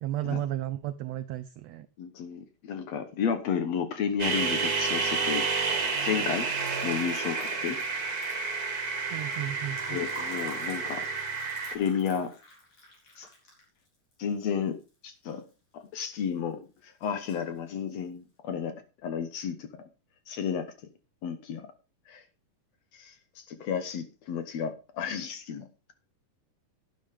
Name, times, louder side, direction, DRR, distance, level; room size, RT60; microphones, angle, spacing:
voice 1, 0.0-1.9 9.1-10.0, right 13 dB, 85° right, 11 dB, 1.4 m, -33 dB
voice 2, 2.0-6.5 6.8-7.8 9.9-11.0 11.7-12.4 13.2-13.3 14.2-14.8 15.0-15.4 15.7-16.6 17.0-18.7 19.0-19.7 20.3-20.7 21.2-21.6 22.1-22.2 23.0-25.6, left 7 dB, 65° left, 9 dB, 1.9 m, -32 dB
sound 1, 4.2-11.8, right 4 dB, 35° right, 1.7 m, -30 dB
Liquid, 5.3-15.5 15.8-16.5 16.8-17.6, left 1 dB, 45° left, 5.3 m, -51 dB
11.5 x 10.0 x 3.5 m, 0.31 s
omnidirectional pair, 3.7 m